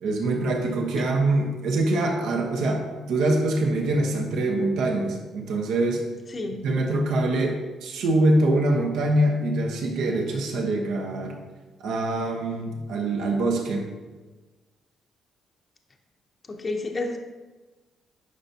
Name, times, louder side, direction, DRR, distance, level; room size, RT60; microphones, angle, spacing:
voice 1, 0.0-6.0 6.5-11.4 11.8-13.8, right 2 dB, 85° right, 1 dB, 1.1 m, -24 dB
voice 2, 6.3-6.7 16.5-17.2, left 2 dB, 35° left, 3 dB, 0.6 m, -30 dB
9.6 x 5.7 x 2.8 m, 1.2 s
cardioid pair, 90°, 0 cm